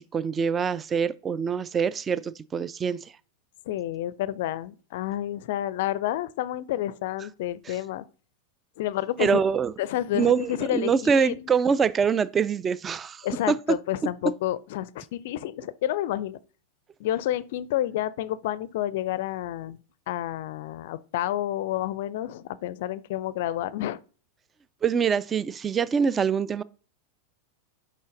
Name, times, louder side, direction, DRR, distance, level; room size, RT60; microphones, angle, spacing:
voice 1, 0.1-3.1 7.7-7.8 9.2-9.7 10.1-13.6 24.8-26.6, right 6 dB, 20° right, 0.3 m, -24 dB
voice 2, 3.7-8.0 8.8-9.4 9.8-11.5 13.2-16.4 17.0-19.8 20.1-24.0, left 13 dB, 50° left, 0.4 m, -29 dB
6.2 x 5.5 x 3.8 m
figure-of-eight pair, 90°, 0 cm